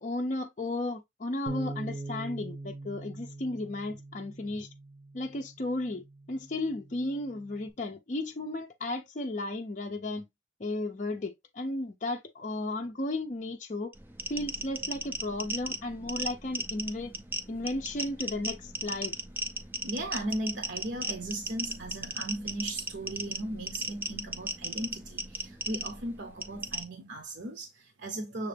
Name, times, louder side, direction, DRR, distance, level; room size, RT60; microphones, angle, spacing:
voice 1, 0.0-4.7 5.1-10.3 10.6-13.9 14.3-17.1 17.5-19.2, left 2 dB, 40° left, 0.5 m, -34 dB
Bass guitar, 1.5-7.7, right 2 dB, 30° right, 0.8 m, -43 dB
sound 1, 13.9-26.8, right 2 dB, 10° right, 0.4 m, -36 dB
voice 2, 19.8-28.5, right 1 dB, 75° right, 0.8 m, -37 dB
6.4 x 2.5 x 3.3 m
head